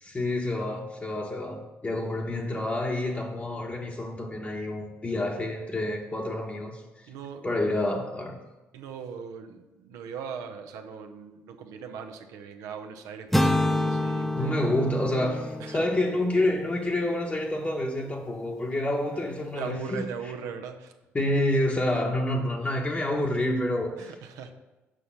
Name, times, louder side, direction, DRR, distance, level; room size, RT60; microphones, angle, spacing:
voice 1, 0.0-7.1 7.4-8.4 14.4-20.1 21.1-24.1, left 1 dB, 25° left, 0 dB, 1.0 m, -28 dB
voice 2, 7.1-7.7 8.7-14.9 15.6-15.9 19.1-19.3 19.5-20.9 21.9-22.1 24.0-24.5, right 6 dB, 85° right, 6 dB, 0.7 m, -40 dB
sound 1, 13.3-17.3, left 1 dB, 5° left, 0.6 m, -28 dB
6.3 x 5.2 x 5.7 m, 1.1 s
supercardioid pair, 65°, 5 cm